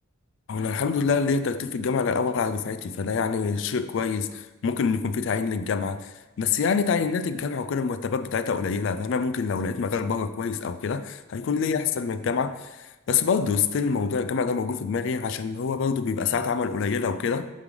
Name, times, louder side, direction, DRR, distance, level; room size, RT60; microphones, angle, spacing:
voice 1, 0.5-17.5, left 5 dB, 60° left, 0.4 m, -26 dB
8.1 x 3.2 x 5.2 m
head